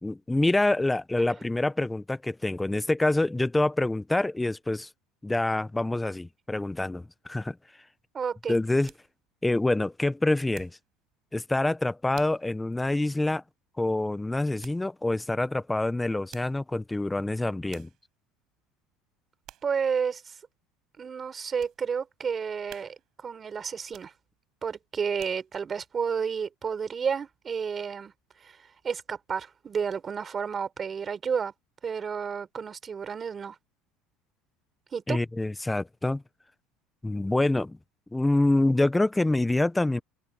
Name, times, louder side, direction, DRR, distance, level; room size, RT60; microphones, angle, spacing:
voice 1, 0.0-4.9 5.2-7.6 8.5-8.9 9.4-10.7 11.3-13.4 13.8-17.9 35.1-36.2 37.0-37.8 38.1-40.0, left 2 dB, 5° left, 0.6 m, -26 dB
voice 2, 8.1-8.6 19.6-20.3 21.0-23.0 23.2-24.1 24.6-28.1 28.4-28.6 28.8-31.5 31.8-33.6 34.9-35.2, right 6 dB, 25° right, 3.8 m, -31 dB
sound 1, 8.2-10.9 11.3-11.6 12.1-12.5 12.9-13.0 14.6-14.9 16.0-16.7 17.3-17.4 17.7-18.1 18.6-18.9 19.4-19.8 20.3-20.4 20.9-21.8 22.2-22.3 22.7-23.2 23.8-24.5 24.9-25.7 26.1-26.2, right 13 dB, 50° right, 7.1 m, -52 dB
open air
cardioid pair, 140°, 0 cm